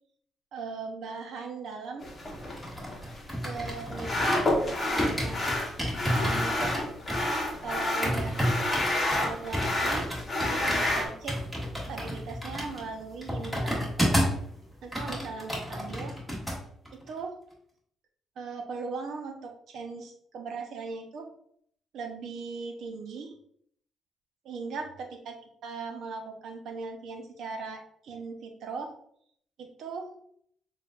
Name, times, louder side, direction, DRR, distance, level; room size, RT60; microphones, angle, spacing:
voice 1, 0.5-2.1 3.4-5.4 6.1-6.9 7.6-8.5 9.2-10.1 10.4-11.4 11.9-14.2 14.8-16.2 16.9-17.4 18.4-21.3 21.9-23.3 24.4-25.3 25.6-28.9 29.6-30.1, right 4 dB, 70° right, 3 dB, 0.8 m, -39 dB
sound 1, 2.0-11.1, left 1 dB, 35° left, 1.0 m, -29 dB
sound 2, 2.3-4.6 5.0-14.5 14.7-16.6 16.9-17.1, equal, ahead, 1.6 m, -31 dB
6.8 x 2.5 x 2.4 m, 0.67 s
cardioid pair, 90°, 0 cm